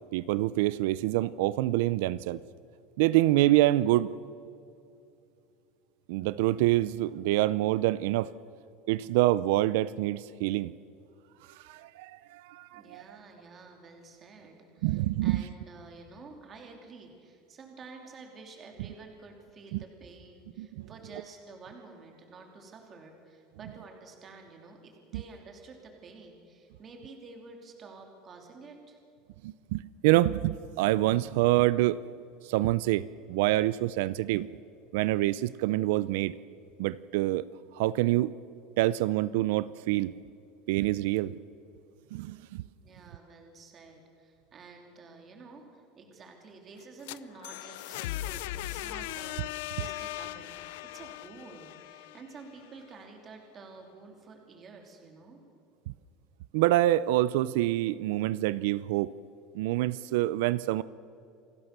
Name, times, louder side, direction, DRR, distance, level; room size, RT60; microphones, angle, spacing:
voice 1, 0.1-2.4 3.0-4.1 6.1-8.3 8.9-10.7 11.6-13.0 14.8-15.4 19.7-19.8 20.6-20.9 29.4-32.0 32.5-34.5 34.9-36.3 36.8-37.5 37.7-38.3 38.8-40.1 40.7-41.3 42.1-42.6 56.5-59.1 59.5-60.8, right 16 dB, 75° right, 18 dB, 0.5 m, -26 dB
voice 2, 12.7-29.0 42.8-50.6 50.9-55.4, right 4 dB, 25° right, 3 dB, 3.0 m, -50 dB
sound 1, 46.8-52.7, left 15 dB, 80° left, 0.6 m, -39 dB
28.0 x 18.0 x 6.8 m, 2.6 s
cardioid pair, 165°, 0 cm